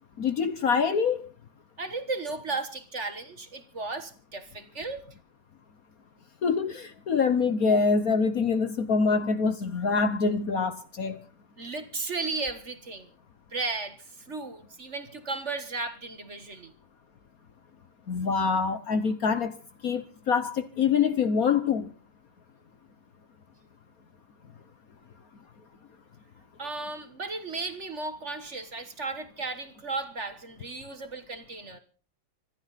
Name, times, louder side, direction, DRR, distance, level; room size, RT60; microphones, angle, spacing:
voice 1, 0.2-1.3 6.4-11.2 18.1-19.5 19.8-21.9, left 5 dB, 55° left, 1.3 m, -25 dB
voice 2, 1.8-5.0 11.6-13.1 13.5-14.0 14.3-16.7 26.6-31.8, right 3 dB, 40° right, 1.6 m, -35 dB
26.0 x 12.5 x 4.1 m
omnidirectional pair, 2.1 m